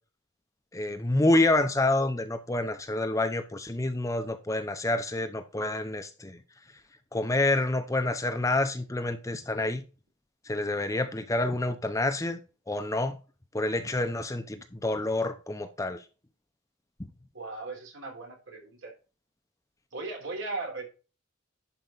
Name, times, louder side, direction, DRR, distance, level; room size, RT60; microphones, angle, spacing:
voice 1, 0.7-6.4 7.1-9.8 10.5-12.4 12.7-13.2 13.5-16.0, left 2 dB, 15° left, 0.7 m, -28 dB
voice 2, 17.3-18.9 19.9-20.8, right 3 dB, 70° right, 3.6 m, -37 dB
11.0 x 4.7 x 3.9 m
head